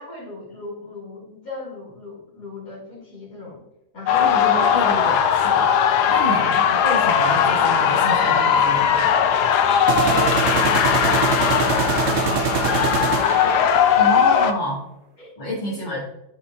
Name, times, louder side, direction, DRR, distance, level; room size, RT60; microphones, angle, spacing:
voice 1, 0.0-3.6 3.9-4.6 6.3-6.9 10.1-14.4 15.2-15.3 15.6-16.0, left 1 dB, 60° left, -5 dB, 3.3 m, -37 dB
sound 1, 4.1-14.5, left 8 dB, 85° left, 1.2 m, -19 dB
voice 2, 4.2-5.7 6.1-9.0 14.0-14.8 15.4-16.0, equal, 35° left, -3 dB, 1.1 m, -28 dB
sound 2, 5.1-5.3 9.9-14.0, right 6 dB, 60° right, 0.7 m, -24 dB
11.0 x 4.1 x 2.7 m, 0.89 s
omnidirectional pair, 1.7 m